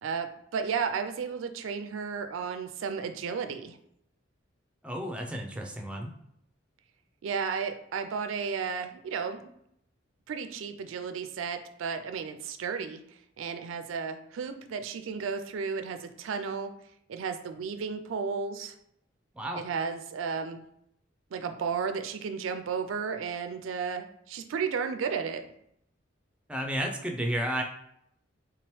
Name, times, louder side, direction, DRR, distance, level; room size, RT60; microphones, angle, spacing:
voice 1, 0.0-3.8 7.2-9.4 10.3-13.0 13.4-16.7 17.1-18.7 19.5-20.6 21.3-25.4, right 6 dB, 80° right, 8 dB, 0.4 m, -33 dB
voice 2, 4.8-6.1 19.3-19.6 26.5-27.6, equal, 5° right, 2 dB, 0.4 m, -32 dB
3.6 x 2.9 x 3.1 m, 0.73 s
head